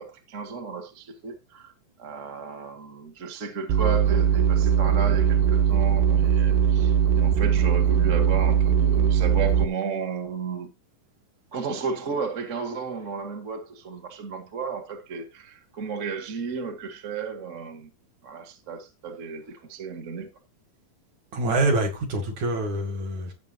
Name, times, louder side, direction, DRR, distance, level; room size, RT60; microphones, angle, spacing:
voice 1, 0.0-1.7 2.0-10.7 11.5-17.9 18.2-20.3, right 5 dB, 35° right, 1.3 m, -33 dB
sound 1, 3.7-9.6, right 8 dB, 85° right, 2.6 m, -20 dB
voice 2, 21.3-23.3, right 2 dB, 55° right, 3.4 m, -25 dB
16.0 x 6.3 x 2.8 m
omnidirectional pair, 4.1 m